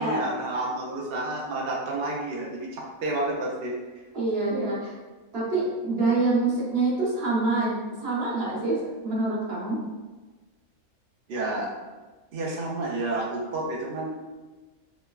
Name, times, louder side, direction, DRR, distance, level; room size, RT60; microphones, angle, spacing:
voice 1, 0.0-3.7 11.3-11.7 12.3-14.1, right 2 dB, 90° right, -3 dB, 0.5 m, -30 dB
voice 2, 4.1-4.9 5.3-7.8 8.0-9.8, right 3 dB, 50° right, -5 dB, 0.8 m, -26 dB
3.0 x 2.1 x 2.2 m, 1.2 s
omnidirectional pair, 1.6 m